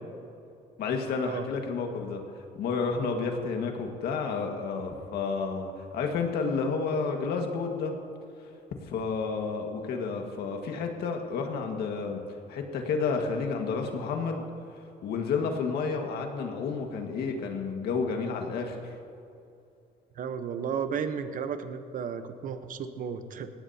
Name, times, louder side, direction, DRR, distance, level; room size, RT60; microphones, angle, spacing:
voice 1, 0.8-7.9 8.9-12.2 12.5-14.4 15.0-18.9, left 4 dB, 70° left, 3 dB, 1.8 m, -31 dB
voice 2, 20.2-23.5, right 7 dB, 55° right, 9 dB, 1.0 m, -33 dB
19.0 x 17.0 x 2.9 m, 2.6 s
cardioid pair, 110°, 17 cm